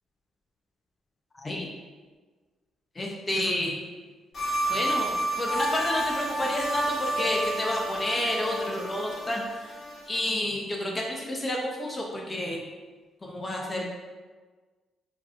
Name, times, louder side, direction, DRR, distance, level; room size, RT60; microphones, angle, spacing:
voice 1, 1.3-1.7 3.0-3.8 4.7-9.7 10.1-12.6 13.2-13.8, left 1 dB, 25° left, -1 dB, 0.5 m, -30 dB
sound 1, 4.3-10.2, right 1 dB, 55° left, 1.1 m, -30 dB
4.5 x 2.7 x 2.4 m, 1.4 s
cardioid pair, 90°, 0 cm